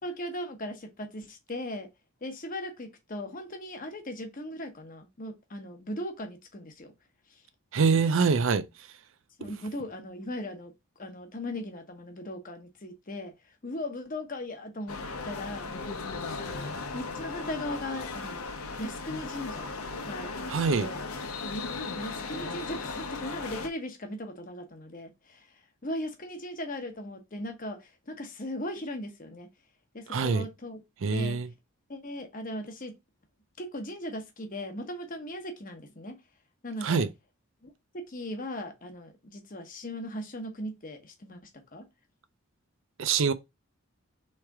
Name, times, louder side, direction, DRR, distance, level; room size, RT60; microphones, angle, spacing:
voice 1, 0.0-1.9 2.2-6.9 9.4-10.7 11.0-13.3 13.6-15.7 16.4-18.4 18.8-19.7 20.0-20.5 20.8-21.0 22.0-25.5 25.8-29.5 29.9-30.8 31.1-31.4 31.9-32.9 33.6-36.1 36.6-37.0 37.6-41.4 41.7-41.8, left 1 dB, 35° left, 0.9 m, -38 dB
voice 2, 7.7-8.7 20.5-20.9 30.1-30.5 31.0-31.5 36.8-37.1 43.0-43.3, right 5 dB, 55° right, 0.4 m, -24 dB
sound 1, 14.9-23.7, left 3 dB, 75° left, 0.8 m, -37 dB
3.6 x 3.2 x 4.6 m
head